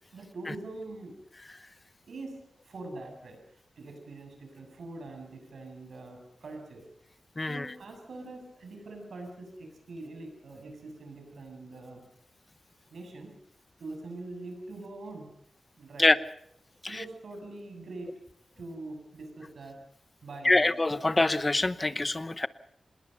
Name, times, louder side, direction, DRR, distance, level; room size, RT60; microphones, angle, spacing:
voice 1, 0.1-1.2 2.1-2.4 2.6-6.8 7.4-12.0 12.9-13.4 13.8-15.4 15.8-16.1 16.9-18.2 18.6-19.8 20.2-20.7, right 2 dB, 80° right, 4 dB, 7.4 m, -43 dB
voice 2, 20.4-22.5, left 2 dB, 25° left, 15 dB, 0.8 m, -25 dB
26.0 x 20.5 x 5.5 m, 0.70 s
wide cardioid pair, 95°, 0 cm